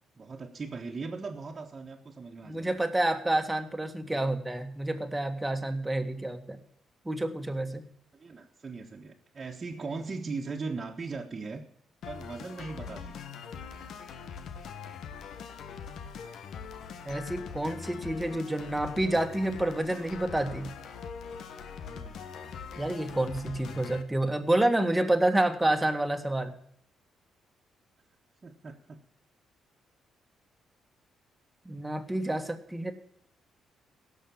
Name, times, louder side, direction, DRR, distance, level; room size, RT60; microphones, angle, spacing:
voice 1, 0.2-2.7 4.0-4.4 8.1-11.6 12.0-13.2 21.9-22.2 28.4-29.0, right 4 dB, 35° right, -3 dB, 1.6 m, -39 dB
voice 2, 2.4-6.6 7.1-7.8 17.1-20.7 22.8-26.5 31.7-32.9, right 1 dB, 10° right, 6 dB, 1.7 m, -28 dB
sound 1, 12.0-24.0, left 6 dB, 70° left, 1.2 m, -42 dB
17.0 x 6.5 x 7.2 m, 0.67 s
cardioid pair, 90°, 0 cm